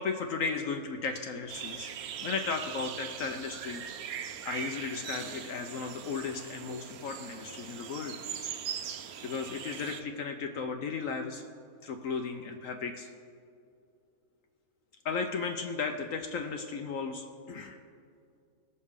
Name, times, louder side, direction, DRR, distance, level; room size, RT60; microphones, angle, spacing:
voice 1, 0.0-2.0 2.2-3.8 4.4-8.2 9.2-11.4 11.8-13.1 15.0-17.8, left 5 dB, 65° left, 5 dB, 1.0 m, -35 dB
sound 1, 1.5-10.0, right 8 dB, 80° right, 1.1 m, -41 dB
19.0 x 6.5 x 3.6 m, 2.4 s
omnidirectional pair, 1.6 m